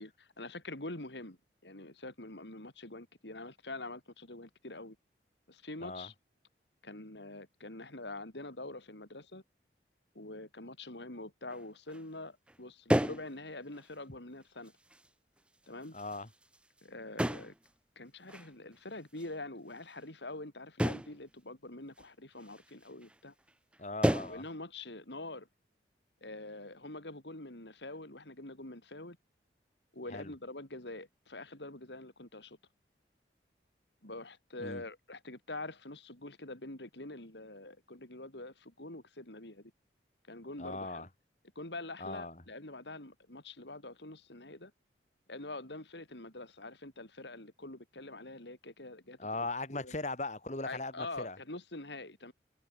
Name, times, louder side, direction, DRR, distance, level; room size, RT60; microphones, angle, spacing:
voice 1, 0.0-5.0 5.5-6.1 6.8-9.4 10.1-14.7 15.7-15.9 16.8-17.5 18.0-23.3 24.3-25.5 26.2-29.2 29.9-32.6 34.0-39.7 40.3-41.1 41.6-44.7 45.3-49.9 50.6-52.3, left 2 dB, 80° left, 4.4 m, -45 dB
sound 1, 11.5-11.6 11.9-12.0 12.5-12.6 12.9-13.3 13.8-13.9 14.7-15.1 15.7-16.8 17.2-17.7 18.3-18.5 19.2-19.3 20.8-21.2 22.0-22.1 22.5-22.7 23.0-23.2 23.5-23.8 24.0-24.4, equal, 5° right, 1.1 m, -32 dB
voice 2, 15.9-16.3 23.8-24.4 30.1-30.3 34.6-34.8 40.6-41.1 42.0-42.4 49.2-51.4, left 2 dB, 40° left, 2.2 m, -39 dB
head